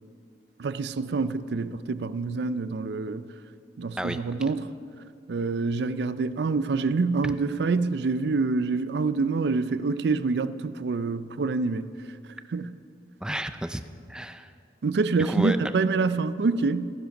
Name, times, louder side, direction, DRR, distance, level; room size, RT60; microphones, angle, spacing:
voice 1, 0.6-3.3 3.8-4.7 5.3-11.9 12.5-12.7 14.8-16.9, right 4 dB, 70° right, 0.4 m, -26 dB
voice 2, 4.0-4.3 7.2-7.3 13.2-13.8 14.1-14.5 15.2-15.8, right 1 dB, 5° right, 0.4 m, -31 dB
14.0 x 10.5 x 5.9 m
head